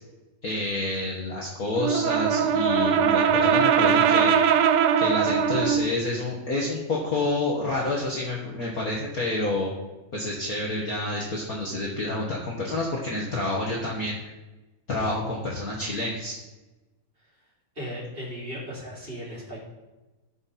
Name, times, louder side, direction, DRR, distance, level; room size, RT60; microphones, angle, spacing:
voice 1, 0.4-4.3 5.0-9.7 10.1-14.2 14.9-16.4, left 2 dB, 60° left, -3 dB, 0.9 m, -28 dB
Brass instrument, 1.7-5.9, right 7 dB, 85° right, 1.5 m, -21 dB
voice 2, 17.8-19.6, equal, 15° right, -6 dB, 3.4 m, -36 dB
16.0 x 5.9 x 4.2 m, 1.1 s
omnidirectional pair, 3.8 m